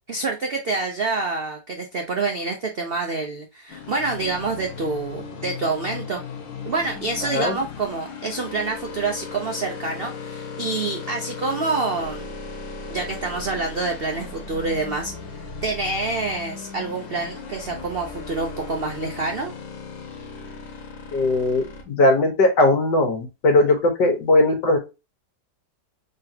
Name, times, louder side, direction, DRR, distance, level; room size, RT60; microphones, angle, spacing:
voice 1, 0.1-6.2 6.7-12.3 12.9-15.1 15.6-19.5, right 3 dB, 75° right, 2 dB, 0.5 m, -27 dB
sound 1, 3.7-21.8, left 5 dB, 85° left, 1.8 m, -37 dB
voice 2, 21.1-24.8, left 2 dB, 65° left, 3 dB, 1.9 m, -19 dB
3.9 x 3.8 x 2.8 m, 0.26 s
omnidirectional pair, 2.0 m